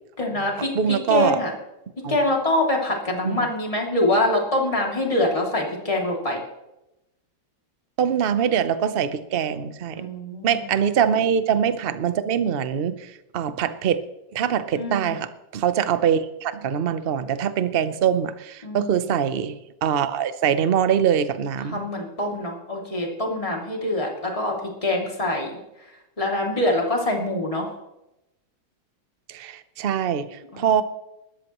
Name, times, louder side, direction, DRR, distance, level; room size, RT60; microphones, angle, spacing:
voice 1, 0.2-1.5 2.1-6.4 10.0-10.9 14.7-15.1 18.6-19.1 21.7-25.5 26.2-27.7 30.5-30.7, left 1 dB, 15° left, -1 dB, 2.7 m, -25 dB
voice 2, 0.7-1.4 2.0-2.2 3.2-3.5 8.0-10.1 10.4-14.0 14.3-21.8 29.3-30.8, right 8 dB, 55° right, 12 dB, 0.6 m, -23 dB
20.0 x 13.5 x 3.1 m, 0.92 s
omnidirectional pair, 2.1 m